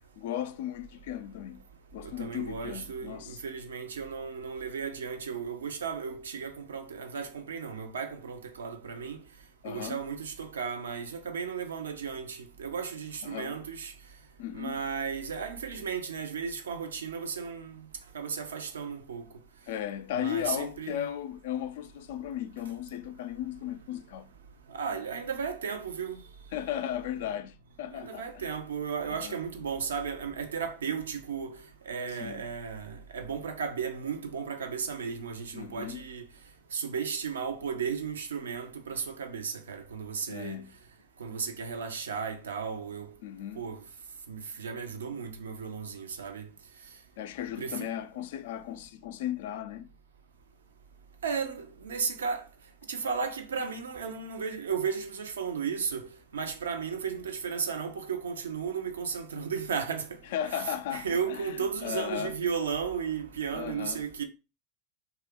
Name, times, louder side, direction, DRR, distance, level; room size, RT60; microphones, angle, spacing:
voice 1, 0.2-1.6 1.9-3.4 9.6-10.0 13.2-13.6 14.4-14.8 19.7-24.3 26.5-28.5 29.0-29.4 32.2-32.4 35.5-36.1 40.3-40.7 43.2-43.7 47.2-49.9 60.3-62.3 63.5-64.0, left 11 dB, 65° left, 0.3 m, -36 dB
voice 2, 2.0-9.2 9.6-13.9 14.5-17.8 18.1-19.3 20.1-21.0 24.7-26.2 27.9-36.3 36.7-40.6 41.2-43.1 43.6-43.8 44.3-46.5 47.6-47.9 51.2-52.4 52.9-56.1 56.3-60.2 60.9-64.2, right 6 dB, 80° right, 0.5 m, -34 dB
2.8 x 2.3 x 3.4 m
hypercardioid pair, 85°, 0 cm